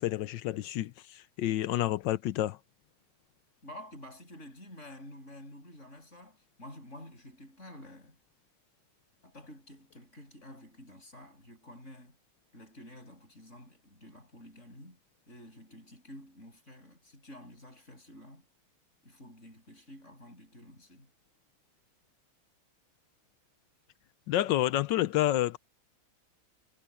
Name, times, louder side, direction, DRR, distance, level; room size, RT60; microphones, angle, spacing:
voice 1, 0.0-2.6 24.3-25.6, left 13 dB, 70° left, 1.2 m, -29 dB
voice 2, 3.6-8.2 9.2-12.2 12.5-15.0 15.3-18.5 19.0-21.1, left 1 dB, 35° left, 7.5 m, -50 dB
omnidirectional pair, 2.3 m